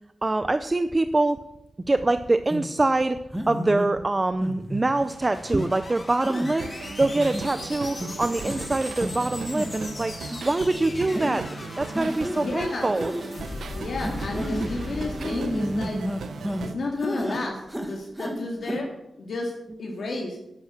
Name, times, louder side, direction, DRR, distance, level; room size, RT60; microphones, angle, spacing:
voice 1, 0.2-1.4 1.9-3.2 3.5-11.5 11.8-13.1, right 2 dB, 20° right, 10 dB, 0.5 m, -24 dB
sound 1, 2.5-2.7 3.3-3.9 4.4-4.9 5.4-5.7 6.2-6.5 7.0-7.5 8.0-8.1 8.4-8.7 9.0-9.1 9.5-9.9 10.2-10.4 11.1-11.3 11.9-12.4 12.9-13.3 14.0-14.7 15.2-16.7 17.0-17.4 17.7-18.4 18.6-18.8, equal, 5° right, 1.7 m, -31 dB
sound 2, 4.6-17.0, left 2 dB, 30° left, 1.4 m, -39 dB
sound 3, 6.6-16.7, right 4 dB, 75° right, 1.0 m, -37 dB
voice 2, 12.4-12.9 13.7-16.0 16.6-18.9 19.2-19.5 19.8-20.4, left 3 dB, 65° left, 0 dB, 2.1 m, -32 dB
11.5 x 9.7 x 7.3 m, 0.86 s
wide cardioid pair, 155°, 0 cm